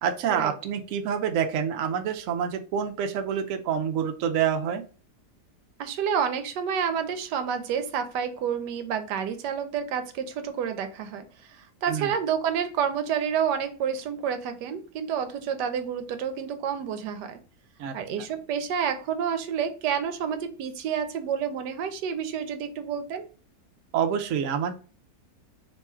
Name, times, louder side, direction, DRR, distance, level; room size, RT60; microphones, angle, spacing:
voice 1, 0.0-4.8 11.9-12.1 17.8-17.9 23.9-24.7, right 8 dB, 70° right, 5 dB, 0.8 m, -27 dB
voice 2, 5.8-17.4 17.9-23.3, right 7 dB, 90° right, 9 dB, 1.2 m, -29 dB
3.0 x 2.3 x 4.2 m, 0.38 s
omnidirectional pair, 1.8 m